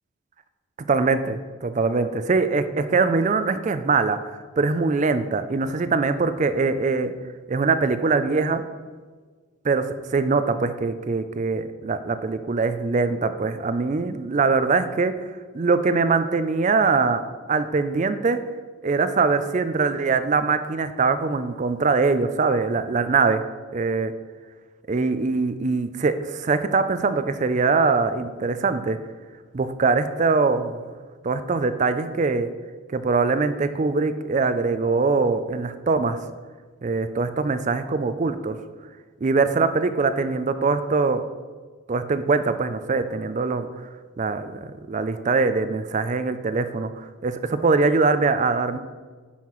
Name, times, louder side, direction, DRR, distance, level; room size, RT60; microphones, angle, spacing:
voice 1, 0.9-7.1 7.5-8.6 9.6-9.9 10.1-15.1 15.5-17.2 17.5-18.4 18.8-23.4 23.7-24.1 24.9-29.0 29.5-30.8 31.2-32.5 32.9-36.2 36.8-38.6 39.2-41.2 41.9-43.7 44.2-44.6 44.9-46.9 47.2-48.8, right 4 dB, 35° right, 11 dB, 0.4 m, -22 dB
10.0 x 5.7 x 3.1 m, 1.5 s
head